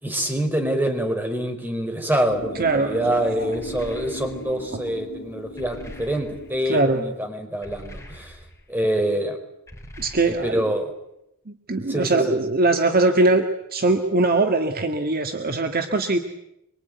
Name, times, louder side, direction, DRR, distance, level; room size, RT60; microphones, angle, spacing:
voice 1, 0.0-8.4 8.7-9.4 10.3-10.9 11.9-12.2, right 1 dB, 10° right, 5 dB, 4.9 m, -25 dB
sound 1, 2.3-7.3, left 1 dB, 85° left, 3.3 m, -38 dB
voice 2, 2.5-3.5 4.7-4.8 6.7-7.0 10.0-10.6 11.5-16.2, right 2 dB, 45° right, 6 dB, 1.8 m, -22 dB
sound 2, 3.5-4.6 5.6-6.7 7.6-8.7 9.7-10.8, equal, 15° left, 6.2 m, -43 dB
25.0 x 24.0 x 9.4 m, 0.84 s
head